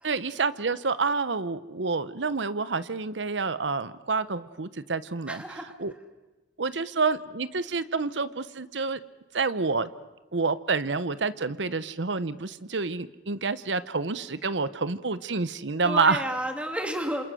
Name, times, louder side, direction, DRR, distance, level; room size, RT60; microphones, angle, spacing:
voice 1, 0.0-5.9 6.6-9.0 9.3-9.9 10.3-16.2, right 4 dB, 80° right, 15 dB, 1.0 m, -28 dB
voice 2, 5.3-5.7 15.8-17.2, right 1 dB, 5° right, 4 dB, 2.6 m, -31 dB
28.0 x 27.5 x 6.4 m, 1.1 s
head